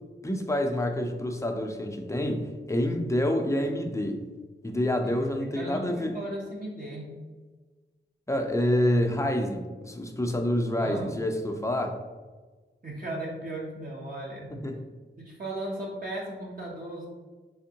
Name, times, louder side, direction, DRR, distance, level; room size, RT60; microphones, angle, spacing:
voice 1, 0.2-4.2 4.6-6.1 8.3-12.0 14.6-14.8, left 1 dB, 15° left, 4 dB, 0.5 m, -27 dB
voice 2, 5.0-7.1 10.8-11.2 12.8-14.5 15.2-17.1, right 1 dB, 45° right, -5 dB, 0.9 m, -36 dB
3.5 x 3.4 x 2.8 m, 1.3 s
wide cardioid pair, 75°, 20 cm